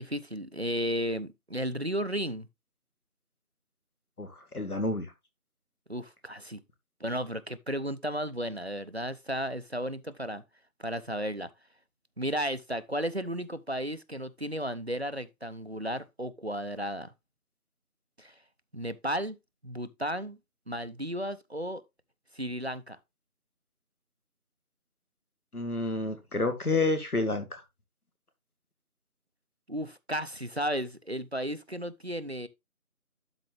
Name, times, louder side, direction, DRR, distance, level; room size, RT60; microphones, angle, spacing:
voice 1, 0.0-2.5 5.9-6.6 7.0-10.4 10.8-11.5 12.2-17.1 18.2-18.3 18.7-19.4 19.6-20.4 20.7-21.8 22.3-23.0 29.7-32.5, equal, 50° right, 0.5 m, -34 dB
voice 2, 4.5-5.1 25.5-27.6, left 2 dB, 85° left, 2.0 m, -29 dB
12.0 x 4.0 x 3.2 m
figure-of-eight pair, 170°, 44 cm